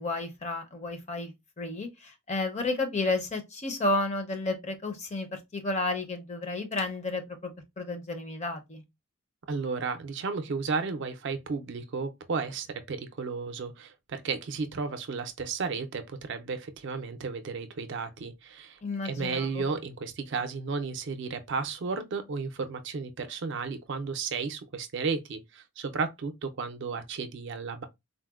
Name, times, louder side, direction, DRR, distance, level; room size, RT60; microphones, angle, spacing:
voice 1, 0.0-8.8 18.8-19.7, left 2 dB, 30° left, 0.5 m, -32 dB
voice 2, 9.5-27.9, right 4 dB, 55° right, 0.4 m, -33 dB
3.8 x 2.1 x 2.3 m
head